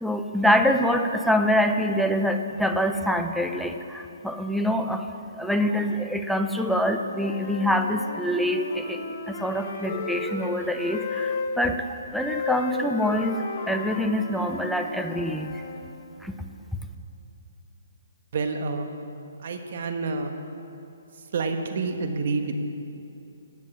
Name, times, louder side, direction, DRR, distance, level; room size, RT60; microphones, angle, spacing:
voice 1, 0.0-5.1 5.3-15.6 16.2-16.3, equal, ahead, 5 dB, 0.6 m, -25 dB
Wind instrument woodwind instrument, 7.0-11.5 12.2-15.8, left 3 dB, 45° left, 2.1 m, -34 dB
voice 2, 18.3-18.9 19.4-20.4 21.1-22.6, right 4 dB, 55° right, 6 dB, 1.5 m, -28 dB
17.0 x 9.4 x 7.5 m, 2.8 s
hypercardioid pair, 155°, 0 cm